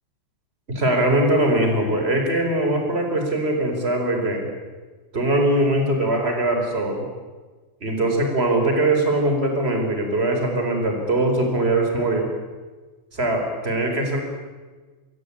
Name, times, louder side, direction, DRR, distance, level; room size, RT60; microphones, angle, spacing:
voice 1, 0.7-4.5 5.1-7.1 7.8-12.3 13.1-14.2, right 1 dB, 15° right, 3 dB, 4.4 m, -21 dB
26.5 x 21.5 x 8.7 m, 1.3 s
omnidirectional pair, 5.7 m